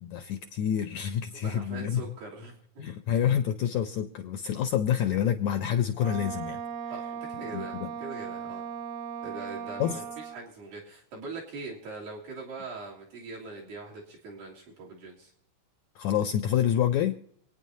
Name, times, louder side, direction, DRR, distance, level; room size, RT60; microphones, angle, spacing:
voice 1, 0.0-2.0 2.8-6.6 7.5-7.9 9.8-10.0 15.9-17.1, left 9 dB, 80° left, 7 dB, 1.7 m, -27 dB
voice 2, 1.3-2.8 6.9-8.7 9.2-15.3, right 3 dB, 75° right, -4 dB, 4.7 m, -42 dB
Wind instrument woodwind instrument, 6.0-10.5, right 7 dB, 60° right, 1.9 m, -38 dB
26.0 x 9.5 x 2.7 m, 0.70 s
omnidirectional pair, 4.0 m